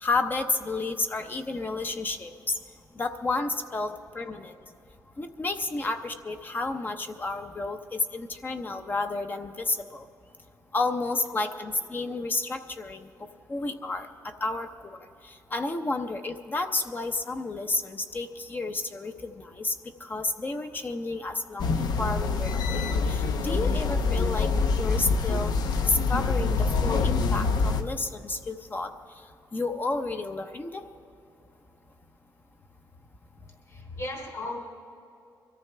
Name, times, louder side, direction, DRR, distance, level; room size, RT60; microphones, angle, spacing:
voice 1, 0.0-2.5 3.0-4.6 5.2-10.0 10.7-13.1 13.5-19.7 20.0-24.5 24.8-25.5 25.8-28.9 29.5-30.8, left 3 dB, 25° left, 6 dB, 0.7 m, -31 dB
sound 1, 21.6-27.8, left 4 dB, 75° left, 0.8 m, -25 dB
voice 2, 33.7-34.6, left 2 dB, 45° left, -1 dB, 3.6 m, -36 dB
23.5 x 14.0 x 3.3 m, 2.6 s
cardioid pair, 120°, 7 cm